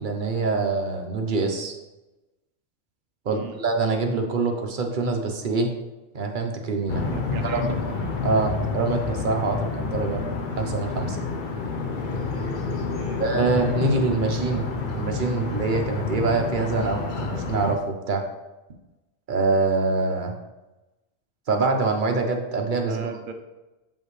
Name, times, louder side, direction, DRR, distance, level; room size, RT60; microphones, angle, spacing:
voice 1, 0.0-1.7 3.3-5.7 6.1-7.0 7.6-7.8 8.2-10.2 10.6-11.2 13.2-14.6 14.9-18.2 19.3-20.3 21.5-23.1, right 3 dB, 45° right, 4 dB, 0.9 m, -25 dB
voice 2, 3.3-3.6 7.1-7.8 12.9-13.2 22.8-23.3, right 6 dB, 85° right, 6 dB, 1.1 m, -37 dB
sound 1, 6.9-17.8, left 4 dB, 45° left, 0.8 m, -29 dB
7.4 x 5.4 x 3.2 m, 1.0 s
omnidirectional pair, 1.3 m